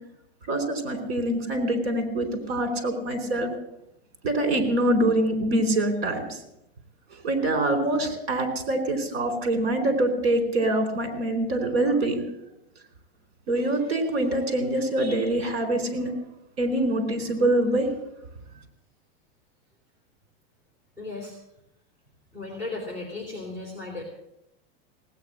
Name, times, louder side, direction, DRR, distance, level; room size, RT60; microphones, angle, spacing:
voice 1, 0.5-3.5 4.2-6.4 7.2-12.2 13.5-16.1 16.6-17.9, right 1 dB, 75° right, 8 dB, 4.3 m, -25 dB
voice 2, 21.0-21.3 22.3-24.0, left 3 dB, 10° right, -4 dB, 3.4 m, -35 dB
17.5 x 9.3 x 7.7 m, 0.81 s
supercardioid pair, 175°, 31 cm